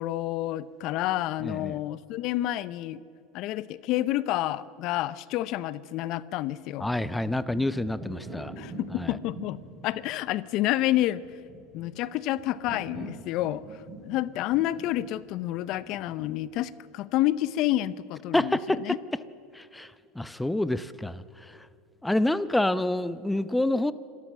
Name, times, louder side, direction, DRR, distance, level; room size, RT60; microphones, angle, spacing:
voice 1, 0.0-3.0 3.3-6.9 8.6-11.2 11.7-18.5 18.8-19.0, left 15 dB, 60° left, 18 dB, 0.6 m, -29 dB
voice 2, 1.4-1.8 6.8-8.5 8.9-9.2 18.3-19.0 19.5-21.7 22.0-23.9, left 1 dB, 5° left, 15 dB, 0.7 m, -28 dB
sound 1, 6.7-16.4, right 2 dB, 25° right, 7.5 m, -44 dB
26.5 x 13.5 x 7.4 m, 2.4 s
supercardioid pair, 100°, 0 cm